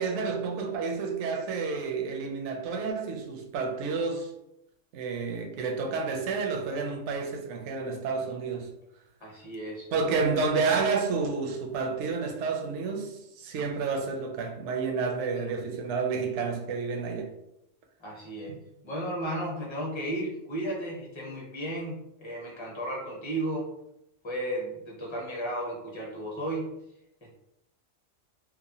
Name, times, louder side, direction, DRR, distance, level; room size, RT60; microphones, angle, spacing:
voice 1, 0.0-4.3 4.9-8.8 9.9-17.3 18.5-18.6, right 4 dB, 70° right, 0.8 m, -30 dB
voice 2, 9.2-9.9 15.4-15.6 18.0-18.6 18.8-23.7 24.2-26.8, right 1 dB, 25° left, 0.8 m, -34 dB
2.9 x 2.1 x 2.7 m
omnidirectional pair, 1.3 m